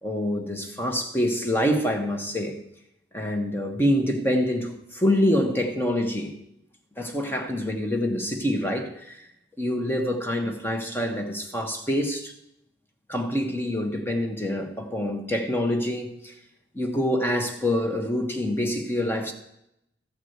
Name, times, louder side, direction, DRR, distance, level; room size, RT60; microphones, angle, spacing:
voice 1, 0.0-2.6 3.1-6.3 7.0-9.3 9.6-12.3 13.1-16.3 16.7-19.3, left 1 dB, 10° left, 1.2 m, -26 dB
13.5 x 4.9 x 8.0 m
head